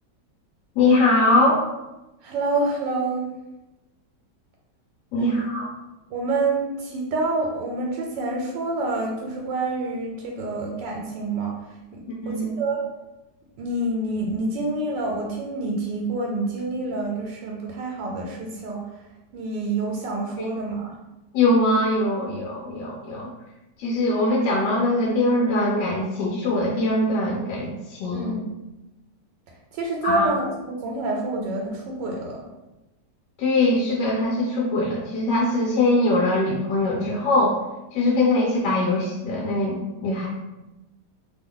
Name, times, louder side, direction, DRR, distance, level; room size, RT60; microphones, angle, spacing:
voice 1, 0.8-1.6 5.1-5.7 12.2-12.5 20.4-20.5 21.3-23.3 23.8-28.3 30.0-30.3 33.4-37.6 37.9-40.3, left 2 dB, 85° left, -4 dB, 1.3 m, -22 dB
voice 2, 2.2-3.3 5.2-5.5 6.1-11.6 11.9-12.9 13.6-18.9 19.3-20.9 28.1-28.4 29.7-32.4, right 2 dB, 85° right, -1 dB, 1.2 m, -27 dB
3.0 x 2.3 x 3.5 m, 1.0 s
omnidirectional pair, 1.9 m